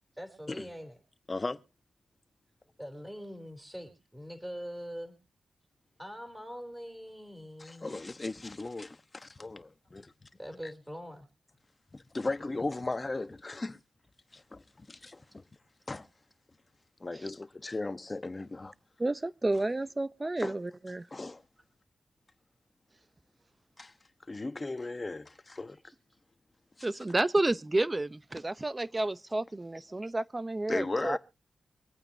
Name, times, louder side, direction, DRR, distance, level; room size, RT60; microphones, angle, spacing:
voice 1, 0.2-1.0 2.8-5.2 6.0-8.0 10.4-11.2 25.7-25.9, equal, 10° right, 3.6 m, -43 dB
voice 2, 1.3-1.6 7.6-10.1 11.9-13.8 14.3-15.4 15.9-16.1 17.0-18.7 20.4-20.5 21.1-21.4 23.8-23.9 24.3-25.8 26.8-26.9 30.7-31.2, left 2 dB, 30° left, 1.2 m, -37 dB
voice 3, 19.0-21.0 26.8-31.2, right 2 dB, 25° right, 0.8 m, -30 dB
25.0 x 8.9 x 2.8 m
cardioid pair, 70°, 0 cm